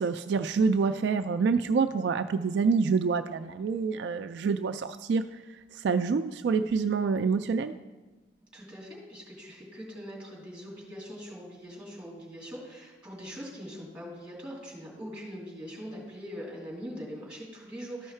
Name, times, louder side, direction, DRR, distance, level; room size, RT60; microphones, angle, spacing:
voice 1, 0.0-5.3 5.7-7.7, right 5 dB, 65° right, 9 dB, 0.3 m, -27 dB
voice 2, 8.5-18.1, equal, 5° right, -5 dB, 2.8 m, -42 dB
13.0 x 5.5 x 4.4 m, 1.2 s
head